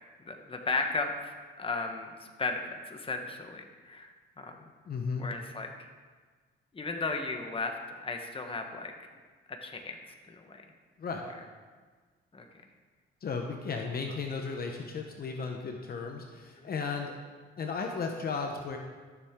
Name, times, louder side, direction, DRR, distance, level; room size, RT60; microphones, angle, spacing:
voice 1, 0.2-4.1 4.4-4.6 5.2-5.7 6.7-8.9 9.5-10.0 10.3-10.6 12.3-12.5 16.6-16.7, left 3 dB, 25° left, 4 dB, 1.2 m, -35 dB
voice 2, 4.9-5.3 11.0-11.3 13.2-17.1 17.6-18.8, left 5 dB, 50° left, 3 dB, 1.0 m, -35 dB
13.0 x 7.3 x 3.7 m, 1.5 s
cardioid pair, 90°, 20 cm